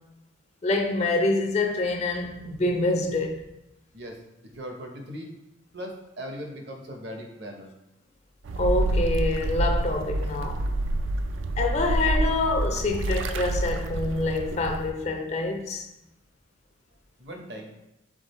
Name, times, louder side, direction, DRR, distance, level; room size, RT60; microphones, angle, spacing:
voice 1, 0.6-3.4 8.6-10.6 11.6-15.9, left 2 dB, 35° left, 0.4 m, -26 dB
voice 2, 3.9-5.3 5.7-7.7 17.2-17.9, equal, 60° right, 0.8 m, -39 dB
sound 1, 8.4-14.9, right 1 dB, 80° right, 0.4 m, -27 dB
3.7 x 3.5 x 4.1 m
head